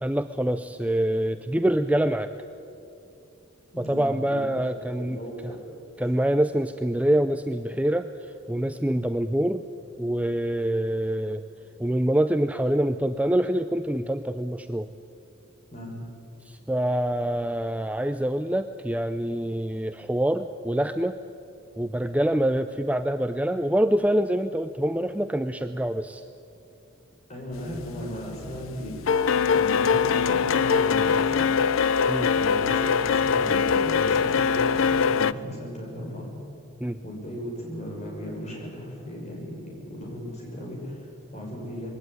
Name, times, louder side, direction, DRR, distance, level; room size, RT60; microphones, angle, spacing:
voice 1, 0.0-2.3 3.8-5.5 6.0-9.6 10.0-11.4 11.8-14.9 16.4-21.2 21.8-26.2 32.1-32.3 36.8-37.0, right 1 dB, 5° right, 9 dB, 0.4 m, -25 dB
voice 2, 3.7-4.5 5.0-5.6 15.7-16.0 27.3-29.3 29.5-31.5 32.3-36.3 37.0-41.9, equal, 35° left, -1 dB, 6.1 m, -36 dB
sound 1, 27.7-28.1 28.4-35.3, left 6 dB, 80° left, 0.5 m, -22 dB
21.5 x 17.0 x 9.6 m, 2.7 s
head